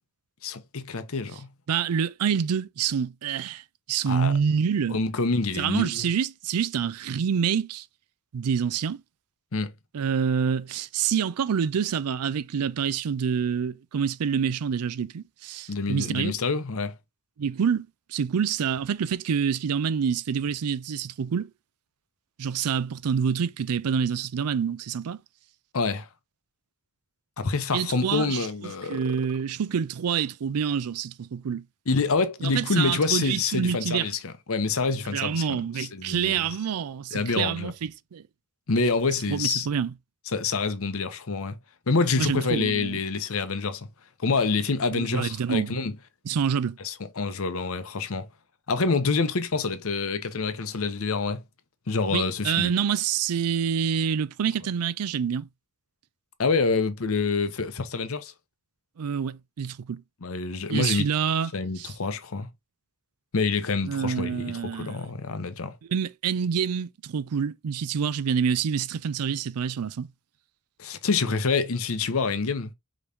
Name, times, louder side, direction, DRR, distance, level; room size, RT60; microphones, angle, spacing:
voice 1, 0.4-1.5 4.1-4.3 4.9-6.1 9.5-9.7 15.7-16.9 25.7-26.1 27.4-29.0 31.9-36.5 37.1-37.7 38.7-39.7 40.3-41.6 41.9-43.9 44.2-46.0 46.8-48.3 48.7-51.4 51.9-52.7 56.4-58.3 60.2-61.1 61.5-62.5 63.3-65.7 70.8-72.7, left 4 dB, 65° left, 0.8 m, -27 dB
voice 2, 1.7-5.0 5.6-7.9 8.3-9.0 9.9-16.4 17.4-21.5 22.4-25.2 27.7-31.6 32.4-34.1 35.1-38.3 39.3-39.9 42.2-43.0 44.9-45.8 46.3-46.8 52.1-55.5 59.0-60.0 60.7-61.5 61.8-61.9 63.9-65.1 65.9-70.1, right 7 dB, 85° right, 0.4 m, -27 dB
5.0 x 3.1 x 2.6 m
head